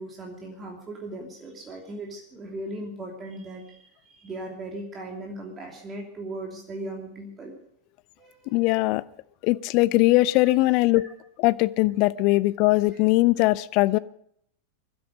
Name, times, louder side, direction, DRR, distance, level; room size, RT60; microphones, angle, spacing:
voice 1, 0.0-7.5 8.2-8.6 11.0-11.1, right 1 dB, 20° right, 1 dB, 2.9 m, -38 dB
voice 2, 8.5-9.0 9.4-11.1 11.4-14.0, left 20 dB, 45° left, 18 dB, 0.6 m, -21 dB
21.5 x 12.0 x 5.2 m, 0.68 s
figure-of-eight pair, 90°, 0 cm